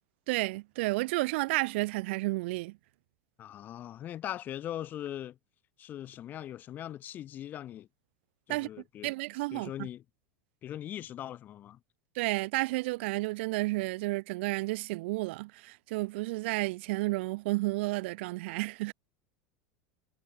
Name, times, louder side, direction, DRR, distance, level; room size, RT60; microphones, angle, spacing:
voice 1, 0.3-2.8 8.5-8.7 9.0-9.9 12.2-18.9, right 22 dB, 65° right, 0.3 m, -31 dB
voice 2, 3.4-5.4 5.8-7.9 8.5-9.1 9.5-10.0 10.6-11.8, left 11 dB, 25° left, 0.6 m, -40 dB
supercardioid pair, 155°, 7 cm